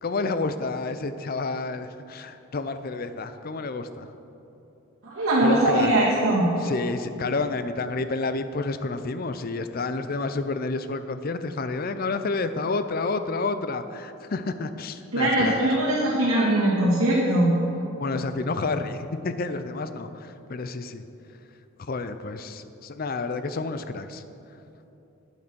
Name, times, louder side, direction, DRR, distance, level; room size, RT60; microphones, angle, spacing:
voice 1, 0.0-4.1 5.4-5.9 6.6-15.6 18.0-21.0 21.8-24.2, left 3 dB, 40° left, 10 dB, 0.5 m, -30 dB
voice 2, 5.0-6.5 15.1-17.5, right 1 dB, 80° right, -9 dB, 2.0 m, -21 dB
9.2 x 8.6 x 6.1 m, 2.9 s
head